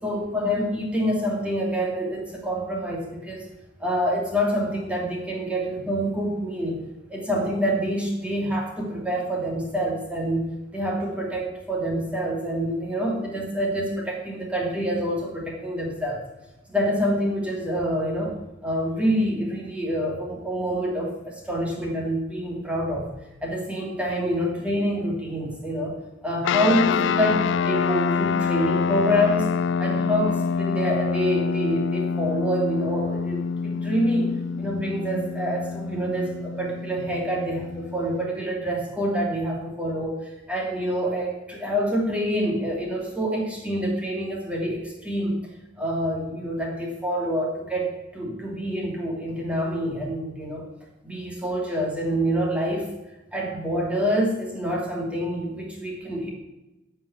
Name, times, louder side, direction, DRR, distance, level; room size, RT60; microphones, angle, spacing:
voice 1, 0.0-3.5 3.8-6.8 7.1-16.2 16.7-18.3 18.6-23.1 23.4-29.5 29.8-34.3 34.6-45.4 45.8-50.7 51.0-52.9 53.3-56.3, equal, 5° right, -2 dB, 2.5 m, -26 dB
sound 1, 26.4-38.3, left 6 dB, 65° left, 0.3 m, -26 dB
11.5 x 5.6 x 8.4 m, 0.99 s
head